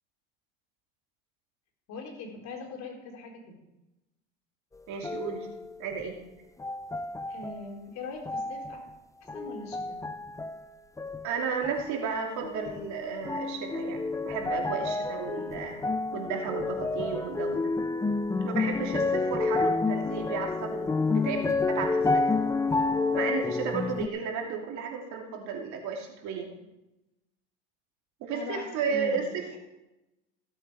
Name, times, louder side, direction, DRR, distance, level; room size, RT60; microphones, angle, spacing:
voice 1, 1.9-3.6 7.3-8.8 9.3-10.0 28.3-29.3, left 3 dB, 55° left, 0 dB, 4.1 m, -41 dB
voice 2, 4.9-5.5 5.8-6.2 11.2-15.8 16.1-17.7 18.4-22.3 23.1-26.5 28.2-29.6, right 6 dB, 55° right, 1 dB, 2.9 m, -33 dB
sound 1, 5.0-6.0 6.6-7.6 8.2-8.9 9.3-10.6 11.0-11.8 12.4-12.9 13.2-24.1, left 3 dB, 10° left, 0.6 m, -29 dB
16.5 x 7.9 x 4.9 m, 0.95 s
hypercardioid pair, 85°, 33 cm